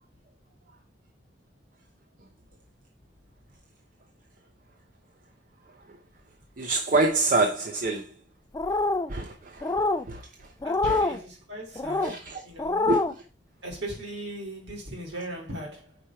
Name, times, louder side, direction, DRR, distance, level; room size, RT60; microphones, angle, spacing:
voice 1, 6.6-8.2 9.1-9.7 10.0-10.5 10.8-11.2 12.0-12.4 12.9-13.2, right 2 dB, 45° right, 0.7 m, -27 dB
sound 1, 8.5-9.1 9.6-10.0 10.6-11.2 11.8-12.1 12.6-13.1, left 3 dB, 20° left, 0.4 m, -25 dB
voice 2, 10.6-12.9 13.6-16.0, right 1 dB, 65° right, 2.8 m, -38 dB
5.0 x 4.5 x 5.7 m
head